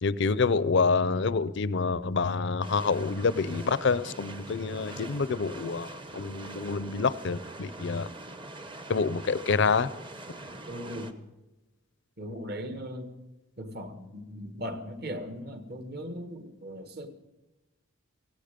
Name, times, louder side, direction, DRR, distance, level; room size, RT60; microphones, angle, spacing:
voice 1, 0.0-8.1 8.9-9.9, left 4 dB, 55° left, 16 dB, 0.5 m, -27 dB
sound 1, 2.6-11.1, right 2 dB, 25° right, 0.8 m, -43 dB
voice 2, 10.7-11.2 12.2-13.1 13.6-17.1, equal, 45° right, 9 dB, 1.4 m, -38 dB
17.0 x 16.5 x 5.2 m, 1.1 s
head